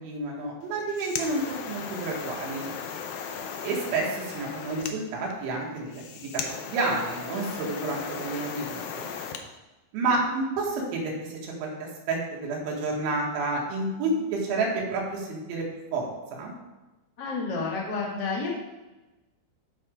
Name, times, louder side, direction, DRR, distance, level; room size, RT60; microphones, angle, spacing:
voice 1, 0.0-2.7 3.6-6.3 6.6-9.1 9.9-15.6 15.9-16.5, right 3 dB, 85° right, -2 dB, 4.1 m, -30 dB
sound 1, 0.7-9.5, left 6 dB, 90° left, 2.1 m, -37 dB
voice 2, 17.2-18.5, left 4 dB, 75° left, -4 dB, 1.0 m, -30 dB
15.0 x 5.1 x 3.4 m, 1.1 s
omnidirectional pair, 5.3 m